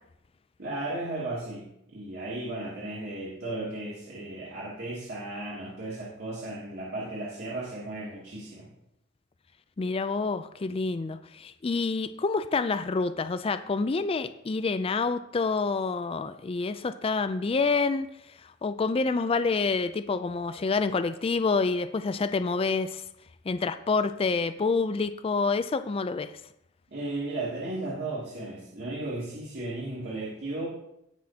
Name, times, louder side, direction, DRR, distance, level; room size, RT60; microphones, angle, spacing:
voice 1, 0.6-8.7 26.9-30.7, right 2 dB, 55° right, -6 dB, 2.5 m, -35 dB
voice 2, 9.8-18.1 18.4-23.0 23.5-26.3, left 4 dB, 30° left, 11 dB, 0.4 m, -27 dB
18.5 x 6.3 x 2.8 m, 0.80 s
head